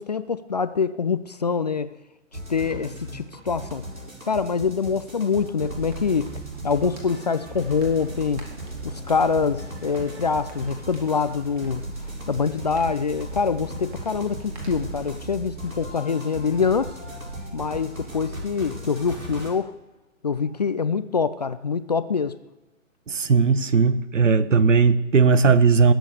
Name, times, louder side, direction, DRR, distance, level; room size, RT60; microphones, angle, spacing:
voice 1, 0.0-1.9 2.5-3.8 4.3-6.3 6.6-8.5 8.8-11.8 12.3-17.0 17.5-19.7 20.2-22.4, left 5 dB, 35° left, 14 dB, 0.4 m, -25 dB
sound 1, 2.3-19.5, right 1 dB, 85° right, 6.4 m, -37 dB
sound 2, 5.9-15.3, right 1 dB, 35° right, 3.9 m, -45 dB
voice 2, 23.1-25.9, right 5 dB, 70° right, 15 dB, 1.2 m, -18 dB
20.0 x 7.9 x 6.6 m, 1.1 s
figure-of-eight pair, 135°, 39 cm